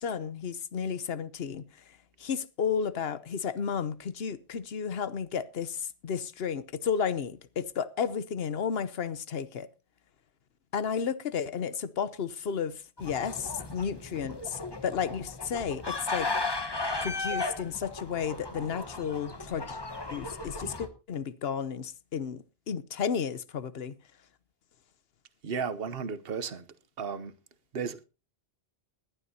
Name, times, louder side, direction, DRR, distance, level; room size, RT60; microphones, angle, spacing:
voice 1, 0.0-1.6 2.2-9.7 10.7-16.3 17.0-19.8 20.1-23.9, left 7 dB, 70° left, 1.1 m, -33 dB
sound 1, 13.0-20.9, left 3 dB, 25° left, 1.3 m, -36 dB
voice 2, 25.4-26.7 27.0-27.3 27.7-28.0, right 6 dB, 65° right, 1.2 m, -34 dB
20.5 x 11.5 x 2.8 m
omnidirectional pair, 1.1 m